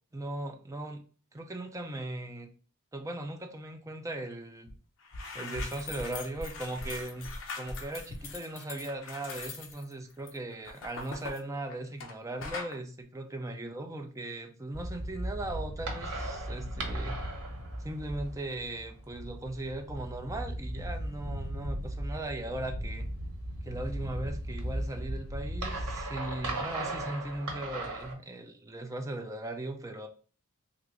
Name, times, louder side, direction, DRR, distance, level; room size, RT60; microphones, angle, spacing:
voice 1, 0.1-1.0 1.3-2.5 2.9-4.7 5.3-17.2 17.8-23.1 23.6-30.1, right 1 dB, 15° right, 4 dB, 0.4 m, -38 dB
sound 1, 4.7-4.8 5.0-12.1 12.4-12.8, left 3 dB, 60° left, 0.7 m, -41 dB
sound 2, 14.7-28.1, right 1 dB, 80° right, 0.9 m, -37 dB
3.6 x 2.5 x 3.0 m, 0.39 s
head